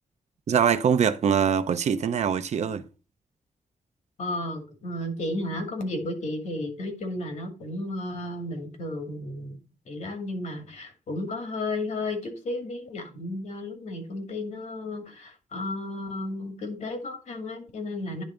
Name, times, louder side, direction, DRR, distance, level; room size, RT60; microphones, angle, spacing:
voice 1, 0.5-2.8, right 7 dB, 65° right, 0.7 m, -23 dB
voice 2, 4.2-9.6 9.9-18.2, left 2 dB, 75° left, 2.3 m, -33 dB
10.0 x 3.4 x 5.0 m
wide cardioid pair, 135°, 12 cm